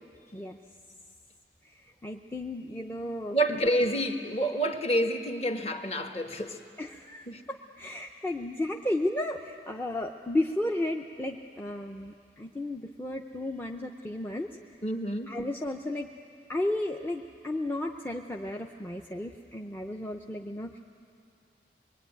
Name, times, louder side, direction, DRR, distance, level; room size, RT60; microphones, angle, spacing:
voice 1, 2.0-3.6 6.8-14.5 15.3-16.1 16.5-20.8, left 1 dB, 10° left, 2 dB, 0.6 m, -33 dB
voice 2, 3.3-6.6 7.3-7.4 14.8-15.4, right 1 dB, 35° left, 5 dB, 1.3 m, -28 dB
24.0 x 22.0 x 9.2 m, 2.5 s
head